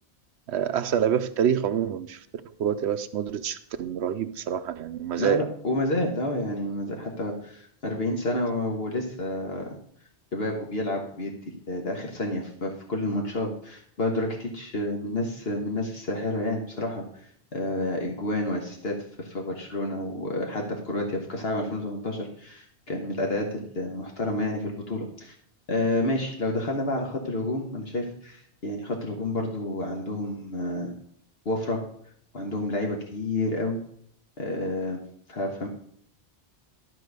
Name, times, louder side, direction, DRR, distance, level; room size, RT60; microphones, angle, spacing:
voice 1, 0.5-2.2 2.5-5.4, right 9 dB, 80° right, 10 dB, 0.9 m, -27 dB
voice 2, 5.2-9.7 10.3-17.1 17.5-25.3 25.7-30.9 31.4-31.8 32.3-33.8 34.4-35.0 35.3-35.7, left 1 dB, 65° left, 1 dB, 1.6 m, -29 dB
12.5 x 4.2 x 6.5 m, 0.65 s
omnidirectional pair, 1.1 m